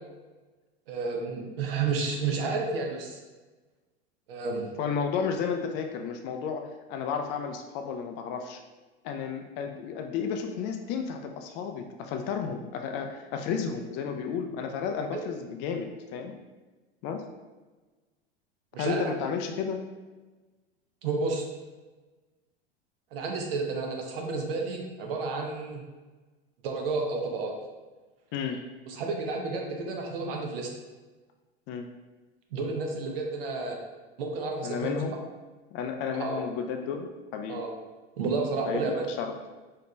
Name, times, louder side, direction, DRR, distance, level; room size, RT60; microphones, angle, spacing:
voice 1, 0.9-3.2 4.3-4.7 15.1-15.2 18.7-19.0 21.0-21.4 23.1-25.8 26.6-27.5 28.9-30.7 32.5-33.8 34.2-34.9 36.2-36.4 37.5-37.7 38.2-39.1, right 4 dB, 65° right, 1 dB, 0.8 m, -31 dB
voice 2, 4.8-8.6 9.0-16.3 17.0-17.2 18.8-19.8 28.3-28.6 31.7-31.9 34.6-35.2 35.7-37.6 38.7-38.8 39.2-39.3, left 6 dB, 40° left, 5 dB, 0.4 m, -32 dB
4.4 x 2.8 x 2.2 m, 1.2 s
figure-of-eight pair, 85°, 31 cm